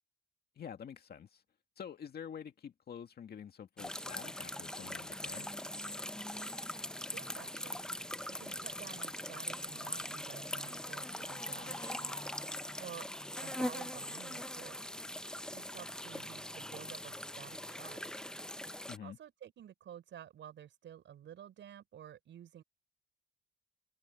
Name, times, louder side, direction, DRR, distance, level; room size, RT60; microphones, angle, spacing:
voice 1, 0.6-1.4 1.8-5.5 18.9-19.2, left 8 dB, 55° left, 2.0 m, -47 dB
sound 1, 3.8-19.0, left 1 dB, 5° left, 0.7 m, -41 dB
voice 2, 7.1-7.9 8.3-12.2 12.8-13.1 13.4-14.9 15.5-18.3 19.0-22.6, right 10 dB, 70° right, 5.8 m, -52 dB
sound 2, 10.8-15.5, left 3 dB, 20° left, 4.7 m, -56 dB
cardioid pair, 90°, 20 cm